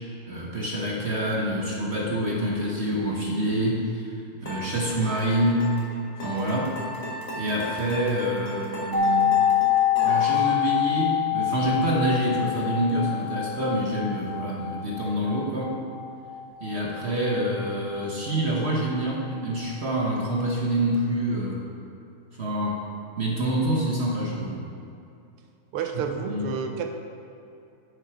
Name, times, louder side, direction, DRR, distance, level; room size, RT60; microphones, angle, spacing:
voice 1, 0.3-5.8 6.2-6.7 7.3-9.4 10.0-15.8 16.6-21.6 22.4-22.8 23.2-24.6 26.0-26.5, right 1 dB, 45° right, -3 dB, 0.9 m, -26 dB
sound 1, 4.5-10.5, left 1 dB, 55° left, 2.2 m, -35 dB
sound 2, 8.9-18.7 18.9-19.0, left 10 dB, 10° left, 0.4 m, -26 dB
voice 2, 25.7-26.9, right 6 dB, 85° right, 5 dB, 1.7 m, -30 dB
8.6 x 7.8 x 4.9 m, 2.7 s
omnidirectional pair, 2.4 m